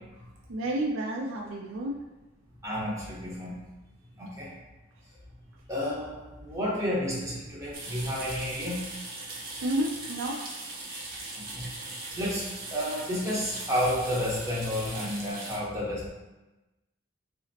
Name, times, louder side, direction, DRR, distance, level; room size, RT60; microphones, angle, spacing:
voice 1, 0.5-2.0 9.6-10.4, right 1 dB, 80° right, -1 dB, 0.4 m, -30 dB
voice 2, 2.6-3.6 4.2-4.5 5.7-8.8 11.5-11.7 12.1-16.1, equal, 15° right, -7 dB, 1.0 m, -31 dB
sound 1, 7.7-15.6, right 2 dB, 45° right, 0.7 m, -40 dB
5.6 x 2.0 x 2.8 m, 1.1 s
head